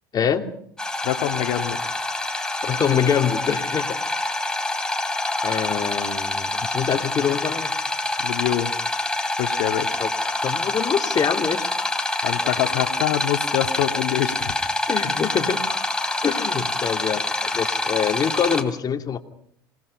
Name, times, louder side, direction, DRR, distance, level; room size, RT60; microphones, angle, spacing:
voice 1, 0.1-0.4 2.6-4.0 5.4-7.7 10.0-10.1 10.4-11.6 14.9-15.6 16.2-19.2, left 7 dB, 35° left, 5 dB, 2.7 m, -24 dB
sound 1, 0.8-18.6, left 2 dB, 5° left, 3.4 m, -26 dB
voice 2, 1.0-1.8 8.2-8.7 9.4-10.0 12.2-14.5, left 13 dB, 65° left, 5 dB, 2.0 m, -25 dB
27.5 x 19.0 x 5.5 m, 0.67 s
hypercardioid pair, 80°, 12 cm